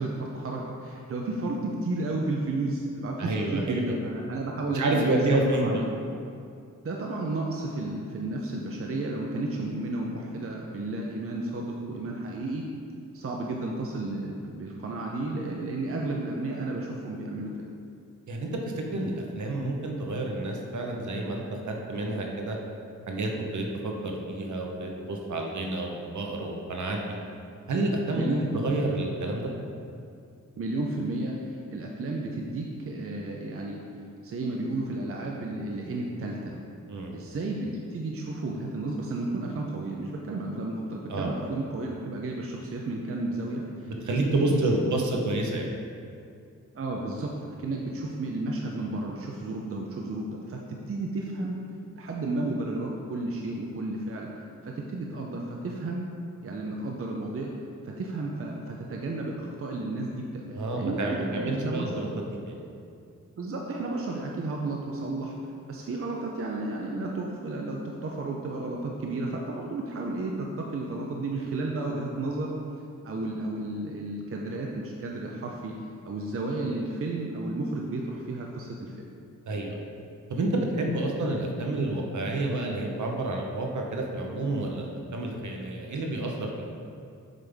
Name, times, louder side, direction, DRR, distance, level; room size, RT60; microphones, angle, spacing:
voice 1, 0.0-5.2 5.6-5.8 6.8-12.7 13.1-17.5 28.1-28.7 30.6-33.8 34.2-36.6 37.1-43.9 44.4-44.6 46.7-47.3 47.6-50.6 50.9-51.6 52.0-54.3 54.6-56.1 56.4-57.5 57.8-62.0 63.4-65.4 65.7-72.6 73.0-75.8 76.1-78.9, right 2 dB, 45° right, -1 dB, 0.6 m, -32 dB
voice 2, 3.2-3.8 4.7-5.8 18.3-18.5 18.8-22.6 23.1-27.0 27.7-28.3 28.5-29.5 36.9-37.1 41.1-41.3 44.0-45.7 60.5-62.6 79.5-79.8 80.3-86.5, right 2 dB, 65° right, 0 dB, 0.9 m, -29 dB
7.4 x 5.4 x 3.5 m, 2.4 s
wide cardioid pair, 130°, 32 cm